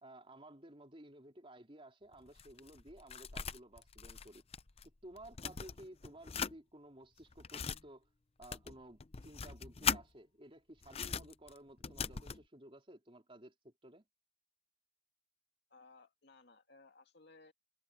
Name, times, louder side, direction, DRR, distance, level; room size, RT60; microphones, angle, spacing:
voice 1, 0.0-4.4 4.8-8.1 8.4-14.1, right 1 dB, 30° right, 3.7 m, -55 dB
sound 1, 2.1-4.9 5.2-6.6 7.2-7.8 8.4-10.0 10.8-12.4, left 6 dB, 30° left, 0.6 m, -40 dB
voice 2, 15.7-17.5, left 3 dB, 60° left, 2.4 m, -61 dB
head